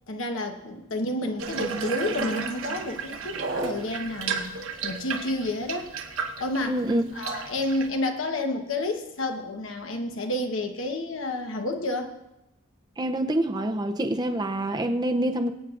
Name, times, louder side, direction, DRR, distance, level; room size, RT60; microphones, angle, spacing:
voice 1, 0.1-4.5 4.8-5.9 6.4-6.8 7.1-12.1, left 1 dB, 65° left, 4 dB, 1.1 m, -30 dB
Water tap faucet / Bathtub (filling or washing), 1.4-7.9, right 4 dB, 70° right, 1.1 m, -32 dB
voice 2, 6.7-7.0 13.0-15.5, right 1 dB, 20° right, 6 dB, 0.5 m, -26 dB
23.0 x 8.8 x 2.5 m, 0.90 s
head